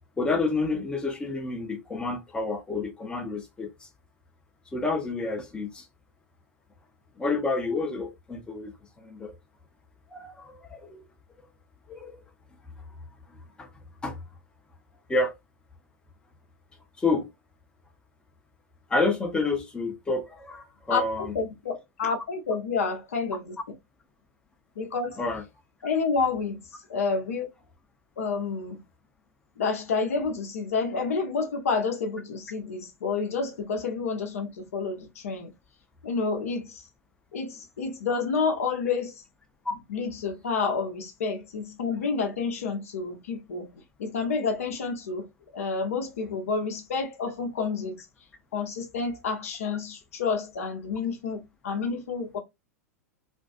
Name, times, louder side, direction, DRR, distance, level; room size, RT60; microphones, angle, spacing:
voice 1, 0.2-3.9 4.7-5.9 7.2-8.7 9.0-9.3 10.1-11.0 11.9-12.2 13.6-13.7 14.0-14.2 15.1-15.3 17.0-17.3 18.9-21.3 25.2-25.4 39.6-39.7, left 3 dB, 10° left, 0.6 m, -29 dB
voice 2, 20.9-23.5 24.8-25.2 25.8-26.6 26.9-27.5 28.2-28.8 29.6-35.5 36.0-36.8 37.3-39.1 39.9-43.7 44.0-45.3 45.5-48.1 48.5-52.4, left 4 dB, 65° left, 0.7 m, -29 dB
2.5 x 2.4 x 2.3 m
figure-of-eight pair, 90°, 8 cm